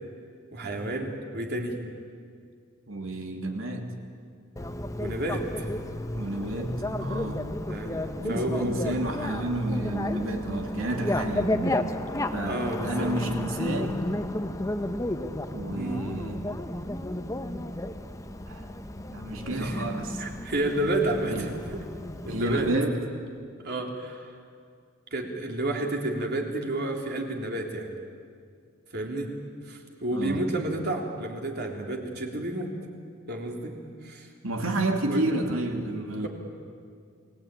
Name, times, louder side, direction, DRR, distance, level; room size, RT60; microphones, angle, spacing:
voice 1, 0.5-1.8 5.0-5.7 7.7-9.0 12.4-13.1 15.7-16.0 19.5-19.8 20.2-21.8 22.3-22.7 23.6-24.2 25.1-27.9 28.9-29.3 29.7-32.7 33.3-33.8 34.0-34.3 35.1-35.3, right 1 dB, 55° right, 1 dB, 3.4 m, -31 dB
voice 2, 2.9-3.9 6.1-7.4 8.2-11.9 12.3-14.0 15.5-16.4 18.5-18.7 19.1-20.2 20.8-20.9 21.3-21.5 22.3-23.0 30.1-30.4 34.4-36.3, right 1 dB, 80° right, 3 dB, 2.9 m, -30 dB
Bicycle, 4.6-22.8, left 1 dB, 15° left, 1.0 m, -32 dB
29.5 x 19.0 x 9.0 m, 2.2 s
head